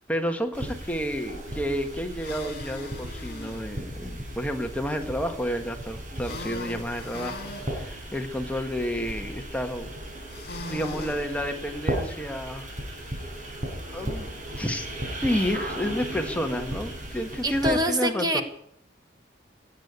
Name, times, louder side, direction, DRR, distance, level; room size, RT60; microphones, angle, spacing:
voice 1, 0.1-9.9 10.6-12.7 13.9-14.9 15.2-18.4, equal, 10° left, 5 dB, 1.4 m, -30 dB
sound 1, 0.5-17.7, right 1 dB, 45° right, 4.7 m, -36 dB
sound 2, 2.1-3.6 6.2-7.7 10.3-11.2, left 2 dB, 55° left, 2.6 m, -39 dB
voice 2, 17.4-18.4, equal, 20° right, 7 dB, 1.4 m, -25 dB
18.0 x 8.4 x 9.6 m, 0.71 s
head